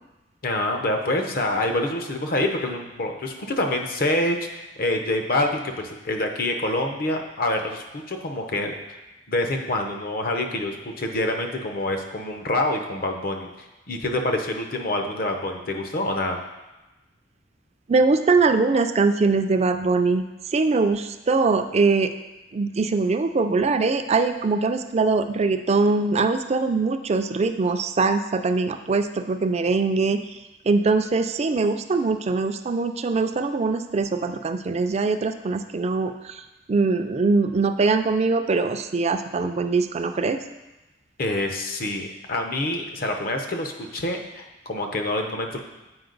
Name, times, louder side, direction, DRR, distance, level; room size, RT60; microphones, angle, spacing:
voice 1, 0.4-9.0 9.3-16.4 41.2-45.6, left 1 dB, 55° left, 4 dB, 0.8 m, -26 dB
voice 2, 17.9-22.1 22.5-30.2 30.6-36.4 36.7-40.4, right 3 dB, 35° right, 8 dB, 0.4 m, -22 dB
7.9 x 5.0 x 3.9 m, 1.0 s
head